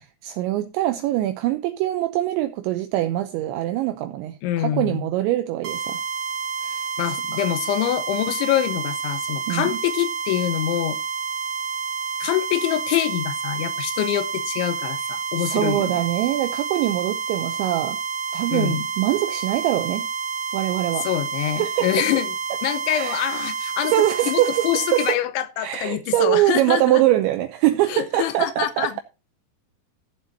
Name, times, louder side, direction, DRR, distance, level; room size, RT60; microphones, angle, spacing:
voice 1, 0.0-6.0 6.6-6.9 7.3-7.4 9.5-9.8 15.4-18.0 18.3-20.1 20.5-21.1 21.6-22.1 22.9-23.2 23.8-25.2 25.6-29.0, right 14 dB, 80° right, 2.8 m, -23 dB
voice 2, 4.4-5.1 7.0-11.0 12.2-16.0 18.5-18.9 21.0-22.3 22.6-23.9 24.3-27.0 27.9-29.0, left 13 dB, 80° left, 3.0 m, -25 dB
sound 1, 5.6-25.2, right 6 dB, 45° right, 3.2 m, -29 dB
14.0 x 7.5 x 4.0 m
omnidirectional pair, 5.7 m